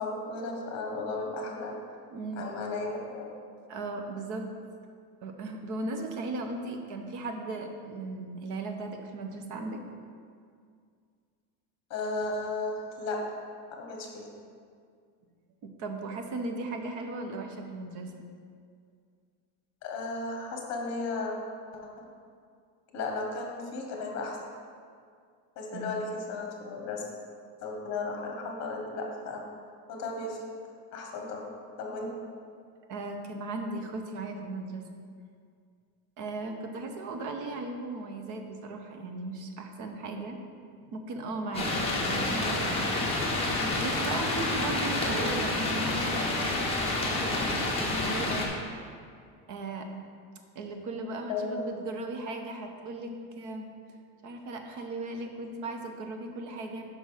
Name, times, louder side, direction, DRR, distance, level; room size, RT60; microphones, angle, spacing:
voice 1, 0.0-1.7 2.4-3.3 11.9-13.2 13.7-14.3 19.8-21.3 22.0-22.1 22.9-24.4 25.6-27.0 27.6-29.4 29.9-30.4 30.9-31.4 31.8-32.1 42.1-42.4 45.0-45.3 51.3-51.7, left 3 dB, 35° left, 1 dB, 1.3 m, -35 dB
voice 2, 2.1-2.5 3.7-4.4 5.2-9.8 15.6-18.1 25.7-25.9 32.9-34.8 36.2-40.4 40.9-43.0 43.8-46.2 47.0-48.5 49.5-49.9 50.5-53.7 54.2-56.9, right 2 dB, 40° right, 4 dB, 0.7 m, -37 dB
sound 1, 41.5-48.5, left 2 dB, 15° left, 0.9 m, -29 dB
5.4 x 5.3 x 6.3 m, 2.2 s
cardioid pair, 170°, 46 cm